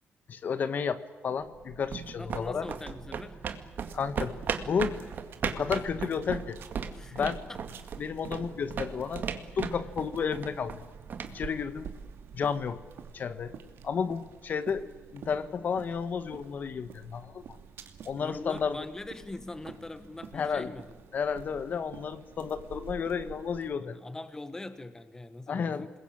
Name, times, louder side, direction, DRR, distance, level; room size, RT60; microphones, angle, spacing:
voice 1, 0.3-2.7 3.9-4.4 4.6-5.0 5.5-6.6 7.1-7.4 8.0-9.3 9.5-10.8 11.3-11.9 12.3-12.8 13.1-13.5 13.8-14.9 15.1-17.4 18.0-18.8 20.3-20.7 21.1-23.9 25.5-25.8, left 6 dB, 45° left, 12 dB, 1.4 m, -32 dB
sound 1, 1.5-12.3, right 6 dB, 50° right, 2.1 m, -38 dB
voice 2, 2.2-3.4 6.9-7.9 18.1-20.9 23.8-25.9, left 2 dB, 15° left, 11 dB, 1.3 m, -42 dB
sound 2, 3.8-23.7, right 7 dB, 70° right, 2.5 m, -49 dB
28.0 x 21.5 x 8.8 m, 1.3 s
cardioid pair, 140°, 4 cm